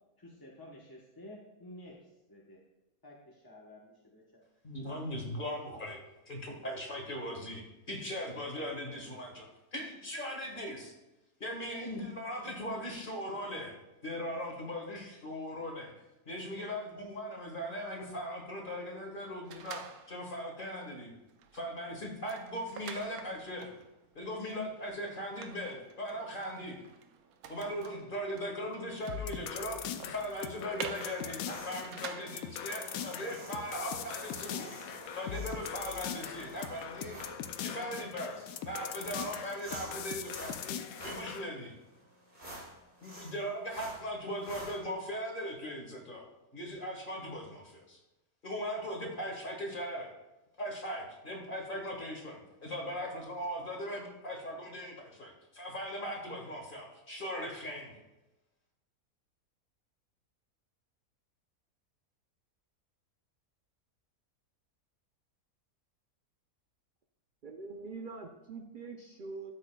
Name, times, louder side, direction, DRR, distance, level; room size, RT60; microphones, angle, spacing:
voice 1, 0.2-2.6 3.0-4.4, left 1 dB, 15° left, -4 dB, 0.9 m, -52 dB
voice 2, 4.6-6.0 6.3-10.9 11.4-13.8 14.0-15.9 16.3-21.1 21.5-23.7 24.2-26.8 27.5-34.7 35.1-37.2 37.6-41.7 43.0-46.3 46.5-48.0 48.4-50.1 50.6-58.0, equal, 35° left, 1 dB, 1.7 m, -39 dB
sound 1, 19.4-20.4 20.8-21.0 21.3-32.6, right 7 dB, 75° right, 1.1 m, -48 dB
sound 2, 29.1-41.5, left 9 dB, 75° left, 1.0 m, -41 dB
sound 3, 30.9-44.8, right 1 dB, 35° right, 3.5 m, -49 dB
voice 3, 67.4-69.5, right 4 dB, 55° right, 3 dB, 0.5 m, -44 dB
13.0 x 7.4 x 2.3 m, 1.0 s
omnidirectional pair, 1.6 m